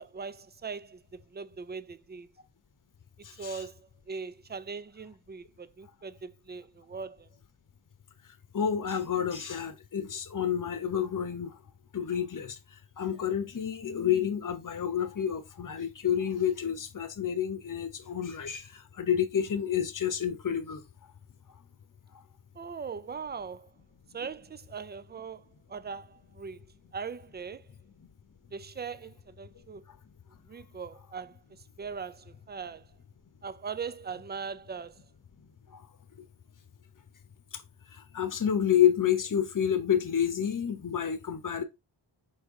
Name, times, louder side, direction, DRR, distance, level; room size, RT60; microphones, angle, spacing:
voice 1, 0.0-2.3 3.4-7.3 22.6-23.7 24.1-26.7 26.9-27.7 28.5-29.8 30.5-32.9 33.4-35.0, right 5 dB, 25° right, 0.3 m, -40 dB
voice 2, 3.2-3.6 8.5-11.5 11.9-20.8 35.7-35.8 37.5-37.6 37.9-41.6, left 9 dB, 40° left, 0.9 m, -29 dB
4.8 x 3.1 x 3.5 m
cardioid pair, 55°, 48 cm